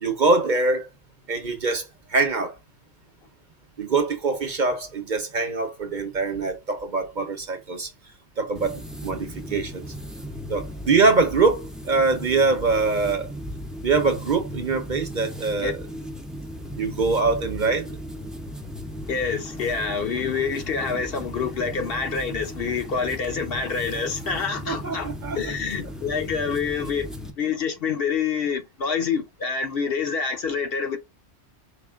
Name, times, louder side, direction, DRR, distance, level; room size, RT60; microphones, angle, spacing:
voice 1, 0.0-0.9 1.3-1.8 2.1-2.5 3.8-7.9 8.4-9.8 10.5-13.3 13.8-15.8 16.8-17.9 24.7-25.4, right 4 dB, 45° right, 0.9 m, -23 dB
sound 1, 8.5-27.3, equal, ahead, 0.5 m, -36 dB
voice 2, 19.1-27.1 27.4-31.0, left 5 dB, 60° left, 0.9 m, -27 dB
4.9 x 2.3 x 3.5 m
omnidirectional pair, 1.2 m